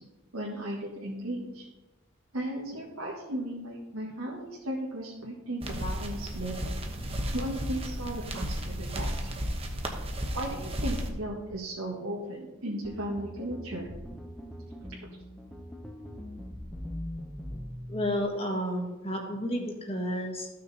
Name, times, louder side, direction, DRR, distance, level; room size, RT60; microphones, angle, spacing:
voice 1, 0.3-1.7 2.3-7.0 7.3-9.1 10.3-13.9, right 1 dB, 80° right, -4 dB, 1.7 m, -36 dB
sound 1, 5.6-11.1, equal, 25° right, 1.1 m, -33 dB
sound 2, 12.8-18.2, equal, 5° left, 0.9 m, -41 dB
voice 2, 17.9-20.5, equal, 25° left, 1 dB, 1.6 m, -31 dB
14.0 x 6.3 x 4.2 m, 1.1 s
head